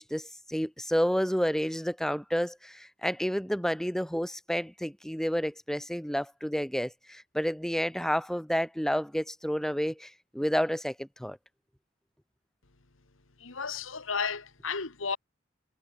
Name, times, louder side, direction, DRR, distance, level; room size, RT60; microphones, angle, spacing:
voice 1, 0.0-11.4, equal, ahead, 1.1 m, -30 dB
voice 2, 13.4-15.2, left 5 dB, 80° left, 1.7 m, -33 dB
head